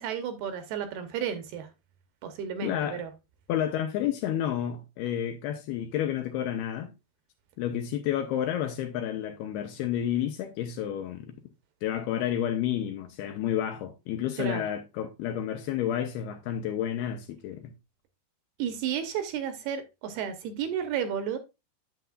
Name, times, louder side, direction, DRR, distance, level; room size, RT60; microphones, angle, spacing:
voice 1, 0.0-1.7 2.2-3.1 14.4-14.6 18.6-21.4, right 8 dB, 75° right, 2.5 m, -32 dB
voice 2, 2.6-3.0 3.5-6.9 7.6-11.4 11.8-17.7, left 10 dB, 85° left, 2.3 m, -30 dB
9.2 x 8.0 x 2.3 m
omnidirectional pair, 5.0 m